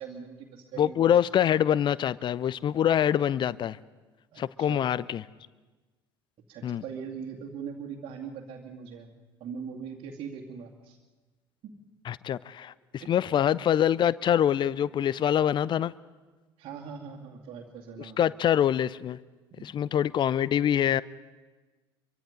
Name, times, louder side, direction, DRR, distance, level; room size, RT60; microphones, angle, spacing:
voice 1, 0.0-1.2 4.3-4.9 6.5-9.1 9.4-11.0 11.6-11.7 13.0-13.1 16.6-18.2 19.5-19.6, right 6 dB, 45° right, -4 dB, 2.3 m, -41 dB
voice 2, 0.8-3.8 4.4-5.2 6.6-6.8 12.1-15.9 18.2-19.2 19.6-21.0, left 10 dB, 35° left, 20 dB, 0.6 m, -25 dB
25.0 x 23.5 x 5.2 m, 1.3 s
figure-of-eight pair, 65°, 14 cm